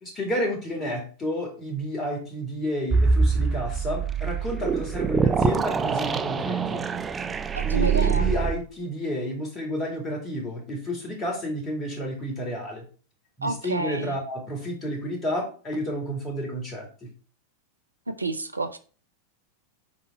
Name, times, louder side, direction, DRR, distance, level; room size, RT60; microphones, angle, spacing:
voice 1, 0.0-6.8 7.6-12.8 13.4-17.1, equal, 20° left, 2.4 m, -31 dB
sound 1, 2.9-8.5, right 5 dB, 15° right, 0.4 m, -24 dB
voice 2, 7.5-8.4 13.4-14.2 18.1-18.8, right 2 dB, 80° right, 0.6 m, -30 dB
6.1 x 4.1 x 5.5 m
figure-of-eight pair, 90°, 0 cm